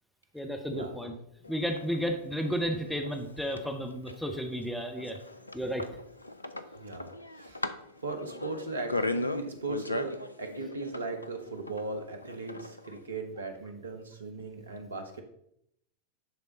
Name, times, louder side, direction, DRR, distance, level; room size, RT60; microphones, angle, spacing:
voice 1, 0.3-1.2 1.5-5.2 5.5-5.8, equal, ahead, 4 dB, 0.8 m, -32 dB
sound 1, 1.4-13.0, left 2 dB, 85° left, 0.4 m, -38 dB
voice 2, 6.8-7.1 7.3-7.6 8.0-15.2, right 3 dB, 75° right, 6 dB, 1.0 m, -38 dB
10.5 x 3.5 x 4.0 m, 0.75 s
figure-of-eight pair, 90°, 0 cm